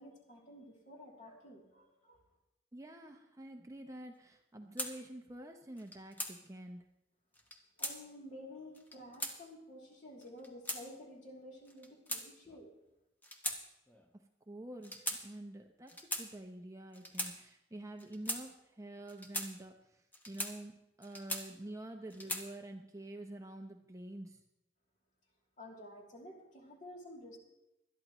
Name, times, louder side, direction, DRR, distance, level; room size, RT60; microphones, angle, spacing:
voice 1, 0.0-2.2 7.8-12.7 25.6-27.4, left 1 dB, 45° left, -1 dB, 2.9 m, -51 dB
voice 2, 2.7-6.9 14.5-24.4, right 1 dB, 15° right, 4 dB, 0.7 m, -48 dB
sound 1, 4.8-4.9 5.8-6.3 7.4-8.0 8.7-9.4 10.2-10.8 11.7-12.6 13.2-13.6 13.9-14.1 14.8-15.2 15.9-16.3 16.9-17.3 18.0-18.4 19.1-19.5 20.1-20.5 21.0-21.7 22.1-22.5, equal, 10° left, 1.1 m, -39 dB
20.5 x 12.0 x 3.1 m, 0.89 s
head